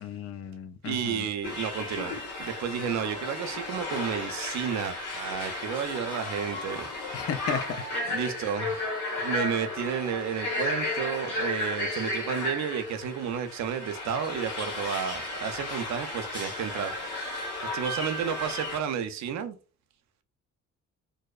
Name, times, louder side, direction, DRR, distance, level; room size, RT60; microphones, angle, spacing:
voice 1, 0.0-1.2 7.1-7.6, left 7 dB, 55° left, 0.4 m, -34 dB
voice 2, 0.8-6.9 8.1-8.9 9.2-17.4 17.7-19.6, right 8 dB, 65° right, 0.5 m, -32 dB
sound 1, 1.4-18.8, left 2 dB, 90° left, 1.0 m, -34 dB
2.6 x 2.0 x 2.3 m
cardioid pair, 90°, 30 cm